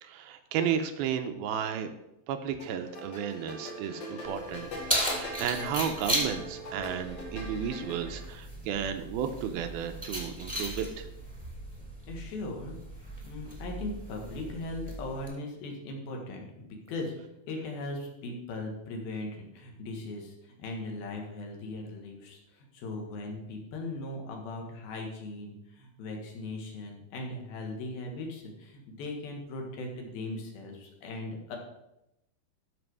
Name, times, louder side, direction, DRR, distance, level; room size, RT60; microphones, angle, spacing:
voice 1, 0.0-1.9 2.3-4.7 5.1-11.1, right 8 dB, 80° right, 7 dB, 2.5 m, -33 dB
sound 1, 2.6-8.3, equal, 45° left, 2.3 m, -42 dB
Keys jangling, 4.2-15.3, right 1 dB, 5° right, 1.5 m, -36 dB
voice 2, 12.1-12.7 13.2-17.2 17.5-31.6, left 2 dB, 65° left, 1 dB, 3.4 m, -39 dB
13.0 x 6.1 x 4.8 m, 0.87 s
omnidirectional pair, 4.7 m